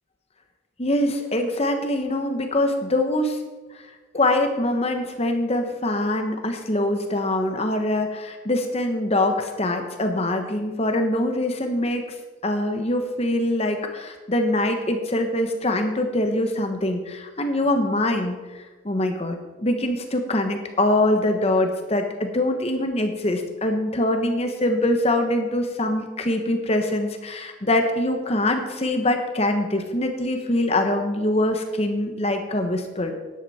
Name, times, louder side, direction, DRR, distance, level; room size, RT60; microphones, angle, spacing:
voice 1, 0.8-3.4 4.1-12.1 12.4-33.1, left 1 dB, 30° left, 5 dB, 1.1 m, -23 dB
13.5 x 10.5 x 4.2 m, 1.3 s
head